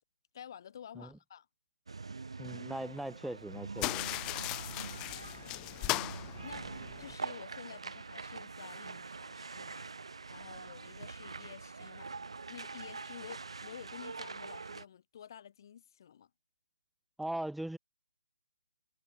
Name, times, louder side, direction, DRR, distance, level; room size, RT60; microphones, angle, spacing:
voice 1, 0.3-1.5 5.4-5.8 6.4-6.7 7.0-9.9 10.3-12.1 12.5-16.3, left 9 dB, 45° left, 2.3 m, -51 dB
sound 1, 1.9-14.8, right 4 dB, 75° right, 5.7 m, -44 dB
voice 2, 2.4-4.1 17.2-17.8, right 1 dB, ahead, 0.6 m, -39 dB
sound 2, 3.8-7.2, left 22 dB, 20° left, 1.2 m, -37 dB
figure-of-eight pair, 150°, 3 cm